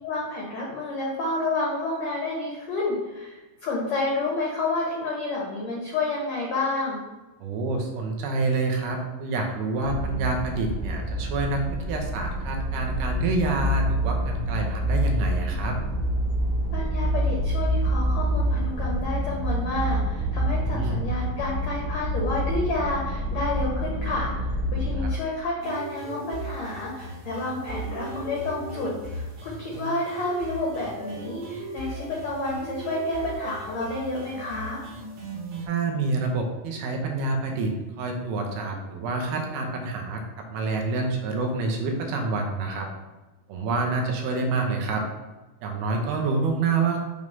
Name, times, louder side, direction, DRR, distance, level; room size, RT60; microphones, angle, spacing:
voice 1, 0.0-7.0 16.7-34.8, left 2 dB, 80° left, -3 dB, 1.5 m, -30 dB
voice 2, 7.4-15.8 20.6-21.1 25.0-25.1 35.6-42.9 43.5-45.0 45.6-47.0, right 3 dB, 85° right, 2 dB, 2.8 m, -27 dB
sound 1, 9.8-25.1, right 1 dB, 45° right, 1.9 m, -27 dB
sound 2, 25.6-35.7, right 2 dB, 65° right, 3.1 m, -37 dB
6.6 x 3.2 x 5.5 m, 1.1 s
omnidirectional pair, 4.5 m